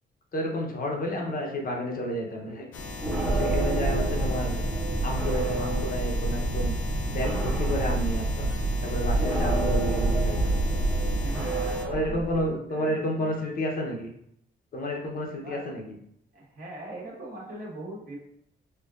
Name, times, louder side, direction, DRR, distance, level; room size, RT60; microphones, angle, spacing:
voice 1, 0.3-2.7 3.3-4.6 5.0-6.7 7.1-8.5 8.8-10.6 11.8-14.1 14.7-16.0, equal, 45° left, 0 dB, 0.8 m, -31 dB
voice 2, 0.9-1.3 2.1-2.6 11.2-13.4 15.4-15.7 16.3-18.2, right 2 dB, 45° right, -4 dB, 1.4 m, -41 dB
sound 1, 2.7-11.9, left 2 dB, 80° left, 0.6 m, -38 dB
sound 2, 3.0-12.5, right 2 dB, 5° right, 0.9 m, -27 dB
4.4 x 2.4 x 2.4 m, 0.72 s
cardioid pair, 90°, 20 cm